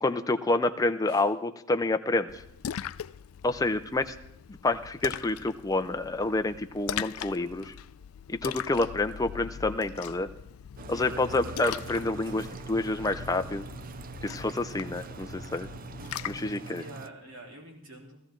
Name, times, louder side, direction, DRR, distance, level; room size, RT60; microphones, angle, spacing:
voice 1, 0.0-2.4 3.4-4.1 4.5-7.7 8.3-10.3 10.9-13.6 14.2-15.7 16.3-16.8, left 2 dB, 15° left, 8 dB, 0.5 m, -28 dB
Splash splatter, 2.3-16.6, left 9 dB, 90° left, 0.4 m, -41 dB
voice 2, 2.7-3.0 10.9-11.4 16.6-18.2, right 1 dB, 70° right, -1 dB, 3.4 m, -47 dB
sound 1, 10.8-17.1, right 5 dB, 45° right, 0.4 m, -43 dB
15.5 x 14.5 x 3.7 m, 0.76 s
head